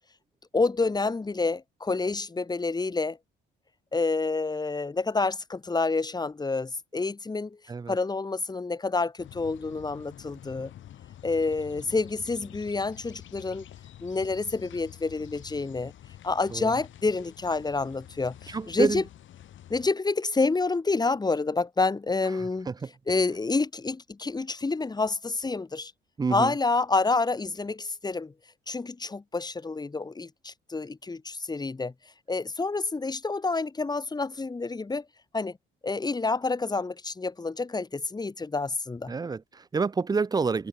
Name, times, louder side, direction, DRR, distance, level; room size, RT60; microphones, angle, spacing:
voice 1, 0.5-3.2 3.9-7.6 7.9-10.7 11.2-13.6 14.0-15.9 16.2-19.0 19.7-22.7 23.1-25.9 26.3-28.3 28.7-31.9 32.3-35.0 35.3-35.6 35.8-39.1, left 3 dB, 20° left, 1.3 m, -28 dB
sound 1, 9.2-19.9, left 11 dB, 75° left, 6.6 m, -48 dB
voice 2, 18.5-19.0 22.4-22.9 26.2-26.5 39.1-40.7, right 4 dB, 20° right, 0.5 m, -28 dB
cardioid pair, 90°, 20 cm